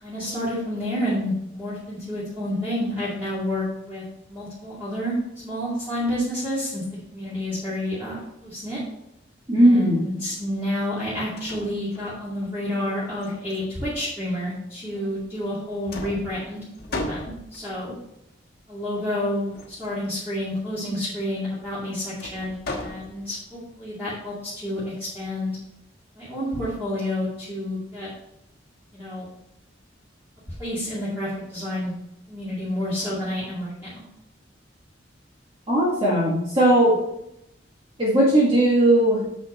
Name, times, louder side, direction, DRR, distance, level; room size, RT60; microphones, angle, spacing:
voice 1, 0.0-5.2 5.4-6.8 7.1-8.8 9.6-16.6 16.9-18.0 18.7-25.6 26.1-28.1 28.9-29.3 30.6-31.9 32.3-33.9, left 1 dB, 10° right, -11 dB, 2.3 m, -29 dB
voice 2, 9.5-10.1 35.7-37.0 38.0-39.3, right 1 dB, 30° right, -6 dB, 1.8 m, -18 dB
sound 1, 11.0-11.1 11.4-12.4 13.2-14.2 15.2-15.6 15.9-17.8 19.5-20.0 22.2-23.5, left 2 dB, 55° left, 1.3 m, -36 dB
7.0 x 6.1 x 4.3 m, 0.82 s
head